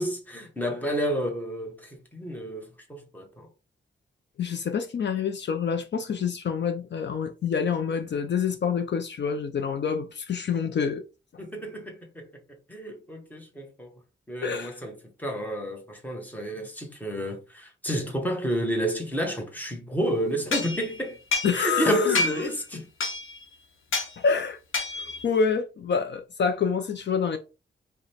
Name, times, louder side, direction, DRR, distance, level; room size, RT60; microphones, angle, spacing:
voice 1, 0.0-3.5 11.4-13.9 14.3-21.2 21.5-22.9, equal, 10° left, 1.0 m, -31 dB
voice 2, 4.4-11.0 14.4-14.7 21.4-22.5 24.2-24.6 25.0-27.4, left 6 dB, 65° left, 0.5 m, -27 dB
sound 1, 20.5-21.8 22.1-22.6 23.0-23.4 23.9-24.1 24.7-25.2, left 3 dB, 85° left, 0.9 m, -29 dB
4.9 x 2.2 x 4.1 m
wide cardioid pair, 165°, 20 cm